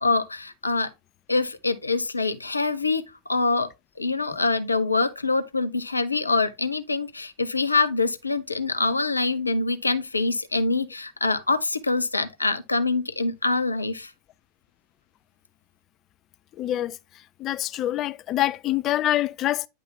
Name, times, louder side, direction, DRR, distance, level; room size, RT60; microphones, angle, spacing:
voice 1, 0.0-0.9 1.3-3.0 3.3-3.7 4.0-14.1, left 3 dB, 80° left, 0.6 m, -25 dB
voice 2, 16.6-17.0 17.4-19.7, left 13 dB, 35° left, 0.4 m, -25 dB
9.9 x 3.4 x 3.8 m
figure-of-eight pair, 90°, 0 cm